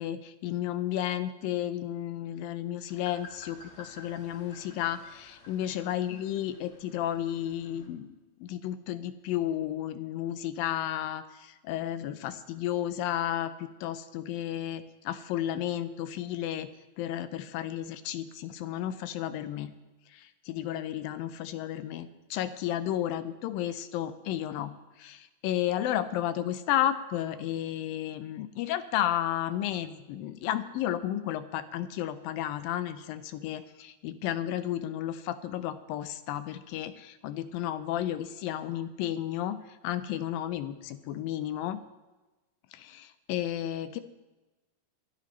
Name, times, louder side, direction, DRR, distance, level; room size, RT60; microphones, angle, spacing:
voice 1, 0.0-8.1 8.4-16.7 17.0-19.7 20.5-41.8 42.8-44.0, left 11 dB, 80° left, 12 dB, 2.4 m, -32 dB
sound 1, 2.9-7.9, left 2 dB, 45° left, 2.5 m, -52 dB
23.0 x 12.0 x 3.2 m, 1.1 s
omnidirectional pair, 4.1 m